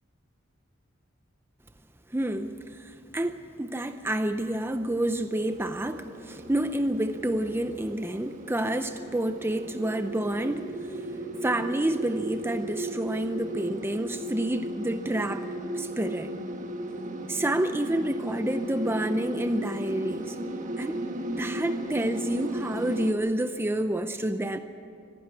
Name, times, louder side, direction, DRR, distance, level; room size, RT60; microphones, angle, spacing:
voice 1, 2.1-11.1 11.3-15.5 15.7-16.3 17.3-20.4 20.8-21.0 21.4-24.6, right 1 dB, 10° right, 9 dB, 0.6 m, -29 dB
sound 1, 5.3-23.1, right 1 dB, 40° right, 1.4 m, -36 dB
25.0 x 11.5 x 9.8 m, 2.5 s
head